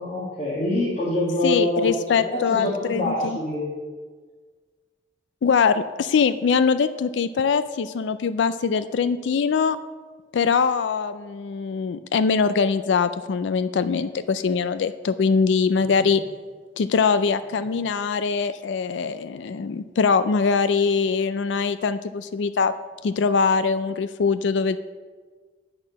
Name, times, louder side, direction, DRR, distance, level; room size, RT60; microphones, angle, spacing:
voice 1, 0.0-2.0 2.3-3.7 15.7-16.2 17.0-17.1, left 1 dB, 40° left, -5 dB, 1.7 m, -26 dB
voice 2, 1.4-3.1 5.4-9.8 10.3-16.2 16.8-22.7 23.0-24.8, left 5 dB, 90° left, 13 dB, 0.4 m, -22 dB
8.8 x 5.9 x 7.3 m, 1.5 s
head